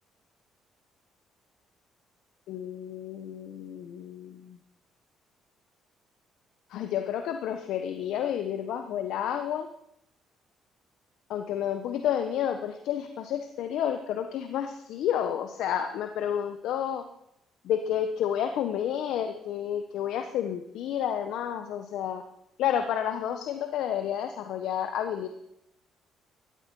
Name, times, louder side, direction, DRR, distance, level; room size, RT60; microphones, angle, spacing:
voice 1, 2.5-4.6 6.7-9.7 11.3-17.0 17.6-22.2 22.6-25.3, left 9 dB, 75° left, 7 dB, 1.1 m, -30 dB
16.0 x 13.5 x 5.5 m, 0.78 s
supercardioid pair, 75°, 0 cm